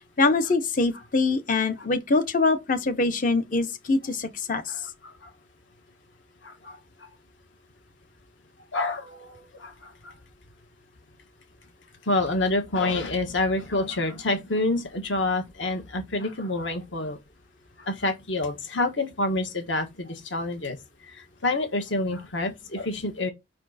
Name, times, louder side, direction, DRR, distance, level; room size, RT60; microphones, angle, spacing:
voice 1, 0.2-4.7, left 3 dB, 40° left, 0.7 m, -24 dB
voice 2, 6.4-6.8 8.7-10.1 12.0-17.2 17.8-20.8 21.0-23.3, left 2 dB, 75° left, 1.6 m, -28 dB
5.4 x 4.3 x 4.1 m
head